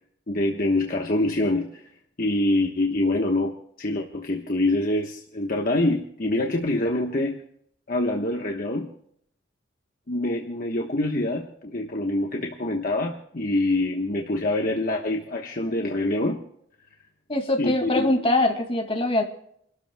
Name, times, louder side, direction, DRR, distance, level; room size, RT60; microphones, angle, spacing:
voice 1, 0.3-1.9 2.2-7.4 7.9-8.9 10.1-16.4 17.6-18.1, left 1 dB, 45° left, 1 dB, 1.2 m, -25 dB
voice 2, 17.3-19.2, left 2 dB, 30° left, 1 dB, 2.2 m, -23 dB
29.5 x 13.0 x 2.3 m, 0.68 s
head